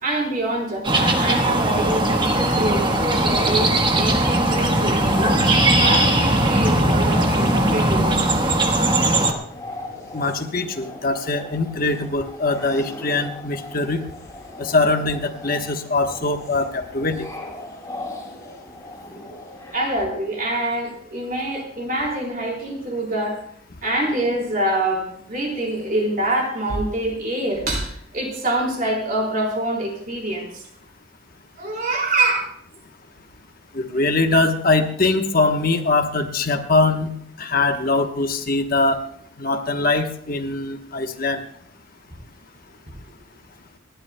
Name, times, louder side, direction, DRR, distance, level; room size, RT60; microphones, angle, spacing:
voice 1, 0.0-5.4 5.8-8.4 9.9-10.0 19.7-23.4 23.8-30.7 31.6-32.5, right 1 dB, 45° right, -1 dB, 3.9 m, -25 dB
sound 1, 0.8-9.3, right 1 dB, 25° right, 1.3 m, -19 dB
sound 2, 1.6-19.7, left 2 dB, 15° left, 4.0 m, -38 dB
voice 2, 10.1-14.0 14.6-17.3 33.7-37.1 37.4-39.0 39.4-41.4, left 3 dB, 45° left, 5 dB, 1.2 m, -22 dB
29.0 x 11.5 x 2.3 m, 0.66 s
head